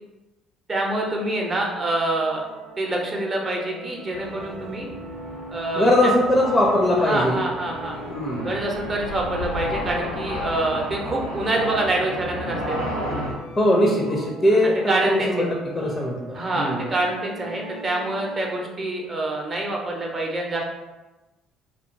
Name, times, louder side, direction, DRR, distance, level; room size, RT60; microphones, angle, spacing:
voice 1, 0.7-2.5 2.8-4.9 5.5-5.9 7.0-8.0 8.4-12.8 14.9-15.5 16.3-20.6, right 2 dB, 30° right, 0 dB, 0.6 m, -26 dB
sound 1, 1.1-18.8, right 2 dB, 85° right, 0.7 m, -40 dB
sound 2, 4.1-13.3, equal, 85° left, 0.6 m, -33 dB
voice 2, 5.7-7.4 8.1-8.5 13.6-15.5 15.7-16.9, left 1 dB, 25° left, -1 dB, 0.4 m, -20 dB
2.4 x 2.2 x 2.6 m, 1.1 s
figure-of-eight pair, 50°, 0 cm